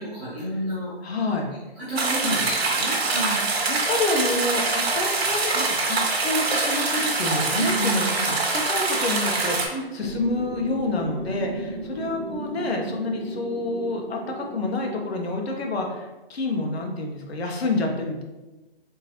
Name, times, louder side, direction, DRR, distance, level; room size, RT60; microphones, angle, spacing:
voice 1, 0.0-0.9 1.8-3.4 7.5-8.3 9.7-9.9, right 1 dB, 10° right, -12 dB, 0.8 m, -30 dB
voice 2, 1.0-1.5 2.2-2.4 3.7-8.0 8.5-18.2, left 2 dB, 85° left, 2 dB, 0.9 m, -28 dB
sound 1, 1.9-9.7, right 3 dB, 80° right, 1.0 m, -24 dB
sound 2, 10.0-15.9, right 2 dB, 55° right, 0.6 m, -36 dB
3.7 x 2.6 x 2.9 m, 1.1 s
hypercardioid pair, 175°, 31 cm